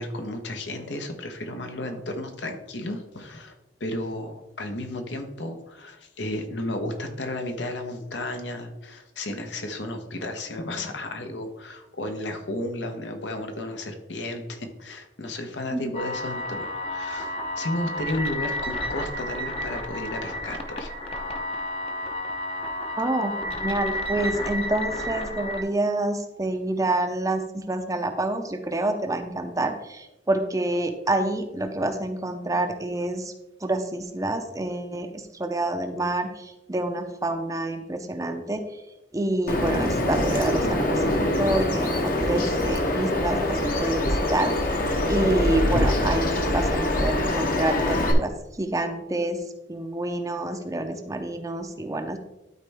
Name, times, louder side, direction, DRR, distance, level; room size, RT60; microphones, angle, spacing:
voice 1, 0.0-3.5 3.8-20.9, left 1 dB, 75° left, 5 dB, 1.1 m, -33 dB
sound 1, 15.9-25.6, left 1 dB, 30° left, 0.8 m, -31 dB
voice 2, 23.0-33.3 33.6-38.6 39.1-44.5 45.1-48.3 48.6-49.4 49.7-52.2, right 2 dB, 20° right, 7 dB, 0.6 m, -27 dB
Bird vocalization bird call bird song, 39.5-48.1, left 1 dB, 50° left, 1.1 m, -24 dB
12.0 x 4.2 x 3.5 m, 0.98 s
head